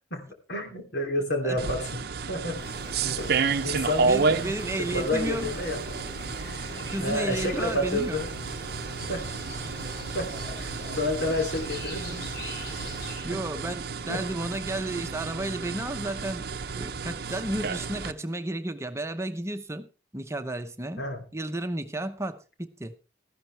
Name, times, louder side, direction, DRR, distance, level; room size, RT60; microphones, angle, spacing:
voice 1, 0.5-2.0 2.3-2.6 3.2-3.3 3.6-4.2 4.8-5.8 7.0-8.3 9.1-9.3 10.1-10.7 11.0-12.3 13.3-13.4 14.1-14.2 21.0-21.2, left 1 dB, 85° left, 3 dB, 2.9 m, -29 dB
sound 1, 1.6-18.1, right 5 dB, 60° right, 0.6 m, -32 dB
sound 2, 2.5-13.3, left 1 dB, 70° left, 4.9 m, -40 dB
voice 2, 4.0-5.5 6.4-6.5 6.9-8.2 13.2-16.5 16.7-21.0 21.3-22.9, right 1 dB, 15° right, 8 dB, 0.8 m, -33 dB
13.5 x 12.0 x 3.3 m, 0.32 s
head